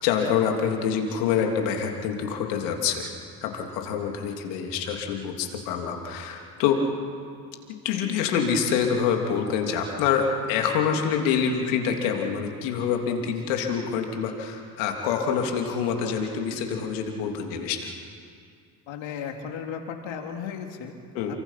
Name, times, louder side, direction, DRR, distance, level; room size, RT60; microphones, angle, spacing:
voice 1, 0.0-3.1 3.4-6.8 7.8-17.9 21.1-21.4, left 7 dB, 85° left, 2 dB, 3.1 m, -26 dB
voice 2, 18.9-21.0 21.3-21.4, left 7 dB, 70° left, 3 dB, 3.0 m, -35 dB
29.0 x 24.5 x 5.9 m, 2.3 s
supercardioid pair, 70°, 48 cm